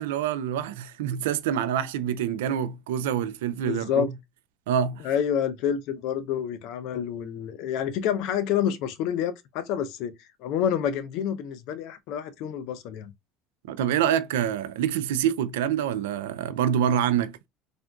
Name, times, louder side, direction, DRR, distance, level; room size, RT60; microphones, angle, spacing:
voice 1, 0.0-4.1 4.7-5.0 13.7-17.3, right 9 dB, 90° right, 0.3 m, -26 dB
voice 2, 3.7-4.1 5.0-10.1 10.4-13.1, left 9 dB, 70° left, 0.5 m, -28 dB
3.5 x 2.5 x 2.2 m
supercardioid pair, 90°, 0 cm